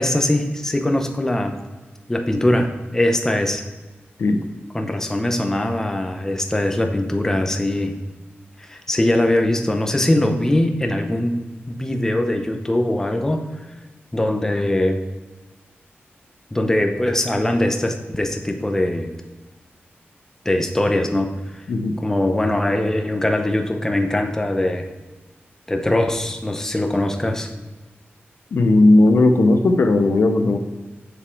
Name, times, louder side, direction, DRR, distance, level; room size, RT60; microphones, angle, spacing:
voice 1, 0.0-1.6 2.1-3.6 4.7-8.0 8.6-13.5 14.1-15.0 16.5-19.1 20.4-21.3 21.5-21.6 22.0-24.9 25.7-27.5, left 1 dB, 10° left, 4 dB, 0.8 m, -21 dB
voice 2, 21.7-22.0 28.5-30.6, left 2 dB, 65° left, 7 dB, 0.7 m, -16 dB
7.2 x 7.1 x 4.5 m, 1.2 s
wide cardioid pair, 170°, 4 cm